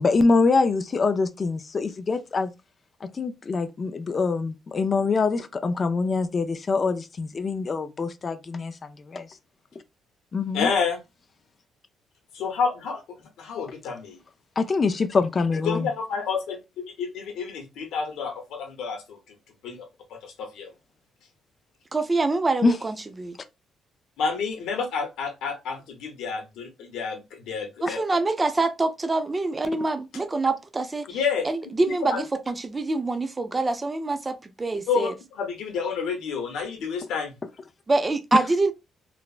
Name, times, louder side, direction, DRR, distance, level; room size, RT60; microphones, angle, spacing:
voice 1, 0.0-2.5 3.0-8.7 9.1-9.3 10.3-10.7 14.6-15.9 22.6-22.8 27.9-28.0, left 4 dB, 40° left, 0.3 m, -24 dB
voice 2, 10.5-11.0 12.3-14.2 15.6-19.2 19.6-20.7 24.2-28.0 31.1-31.5 31.9-32.2 34.9-37.3, left 5 dB, 85° left, 0.8 m, -29 dB
voice 3, 21.9-23.4 27.8-31.0 31.5-35.1 37.9-38.7, right 3 dB, 25° right, 0.5 m, -25 dB
3.2 x 2.0 x 2.4 m
cardioid pair, 90°, 0 cm